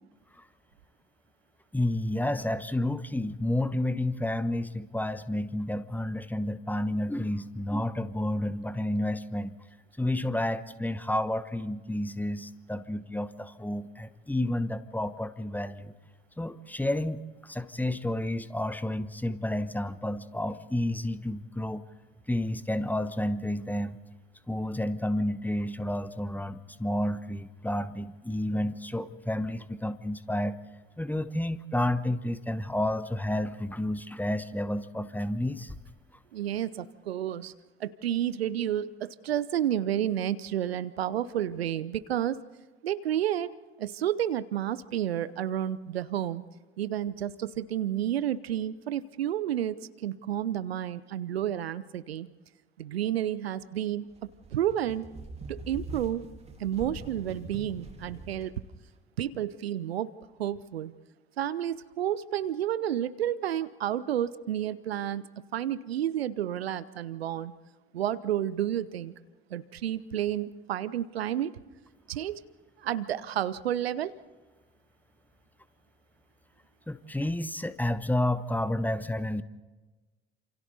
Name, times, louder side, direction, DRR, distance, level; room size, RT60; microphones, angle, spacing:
voice 1, 1.7-9.5 10.0-15.9 16.4-21.8 22.3-24.0 24.5-30.6 31.0-35.8 76.9-79.4, left 1 dB, 5° left, 14 dB, 1.1 m, -30 dB
voice 2, 36.3-37.5 37.8-42.4 42.8-43.5 43.8-46.4 46.8-52.3 52.8-54.1 54.5-55.1 55.5-56.2 56.6-58.5 59.2-60.1 60.4-60.9 61.4-65.3 65.5-67.5 67.9-69.1 69.5-71.5 72.1-72.4 72.8-74.1, right 11 dB, 75° right, 18 dB, 0.8 m, -30 dB
sound 1, 54.1-58.4, right 2 dB, 20° right, 3.7 m, -43 dB
29.0 x 27.5 x 4.1 m, 1.2 s
figure-of-eight pair, 60°, 31 cm